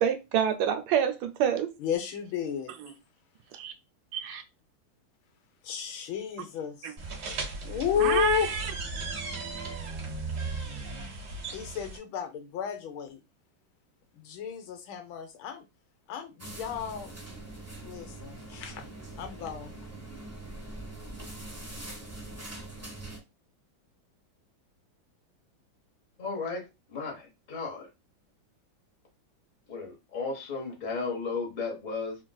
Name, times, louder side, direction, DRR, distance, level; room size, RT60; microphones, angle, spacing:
voice 1, 0.0-1.7 3.5-3.7 4.1-4.4 8.0-8.4, right 8 dB, 85° right, 1.4 m, -27 dB
voice 2, 1.8-2.7 5.6-6.9 7.6-8.5 11.5-13.2 14.1-15.7 16.1-17.1 17.8-18.8 19.2-19.7, left 9 dB, 80° left, 1.4 m, -32 dB
sound 1, 7.0-12.0, right 3 dB, 50° right, 1.0 m, -36 dB
sound 2, 16.4-23.2, right 2 dB, 15° right, 0.6 m, -43 dB
voice 3, 26.2-27.9 29.7-32.2, left 4 dB, 45° left, 0.6 m, -34 dB
3.6 x 2.5 x 2.2 m
omnidirectional pair, 2.2 m